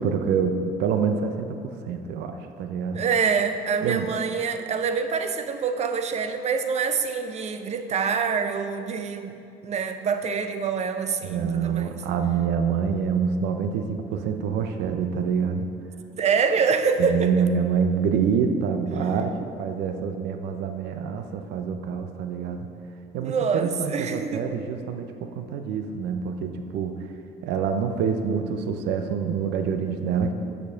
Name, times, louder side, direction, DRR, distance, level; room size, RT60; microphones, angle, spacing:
voice 1, 0.0-1.6 1.8-3.0 3.8-4.1 11.2-15.7 17.0-22.7 23.1-27.0 27.4-30.3, right 6 dB, 85° right, 6 dB, 0.6 m, -26 dB
voice 2, 2.9-9.4 9.6-12.0 16.2-17.4 23.2-24.5, right 5 dB, 40° right, 8 dB, 0.6 m, -26 dB
7.0 x 5.2 x 6.3 m, 2.5 s
cardioid pair, 110°, 17 cm